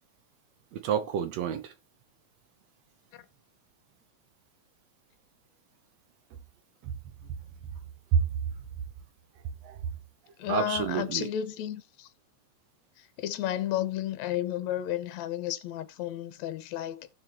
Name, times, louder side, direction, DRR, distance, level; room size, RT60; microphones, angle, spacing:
voice 1, 0.7-1.7 6.8-6.9 8.1-8.2 9.6-9.8 10.5-11.3, right 8 dB, 70° right, 1.9 m, -28 dB
voice 2, 10.4-12.1 13.2-17.1, left 12 dB, 70° left, 2.2 m, -32 dB
16.5 x 6.1 x 3.0 m
omnidirectional pair, 3.4 m